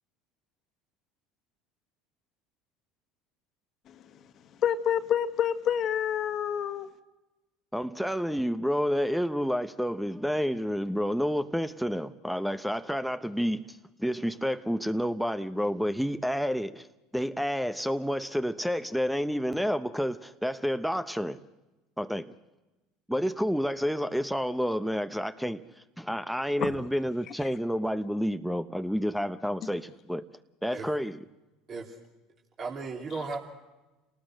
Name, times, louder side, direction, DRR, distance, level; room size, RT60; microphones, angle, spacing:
voice 1, 3.8-6.9 26.6-26.8 27.3-27.5 29.6-29.7 33.1-33.2, left 9 dB, 50° left, 9 dB, 1.7 m, -29 dB
voice 2, 7.7-16.9 17.1-21.4 22.0-22.3 23.1-25.6 26.0-30.3 30.6-31.2, equal, ahead, 11 dB, 0.9 m, -29 dB
voice 3, 32.6-33.4, right 4 dB, 40° right, -2 dB, 3.6 m, -35 dB
29.0 x 19.0 x 6.5 m, 1.1 s
hypercardioid pair, 80°, 0 cm